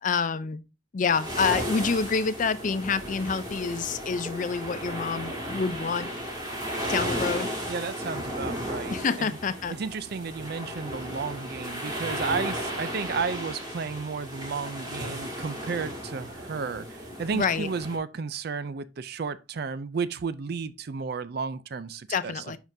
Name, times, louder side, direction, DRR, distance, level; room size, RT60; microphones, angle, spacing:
voice 1, 0.0-0.6 0.9-6.1 6.9-7.5 8.9-9.7 17.3-17.7 22.1-22.6, left 5 dB, 40° left, 0.4 m, -27 dB
sound 1, 1.0-18.0, equal, 20° right, 1.9 m, -34 dB
voice 2, 7.7-9.4 9.8-22.6, right 5 dB, 55° right, 0.4 m, -33 dB
10.5 x 3.7 x 2.7 m
head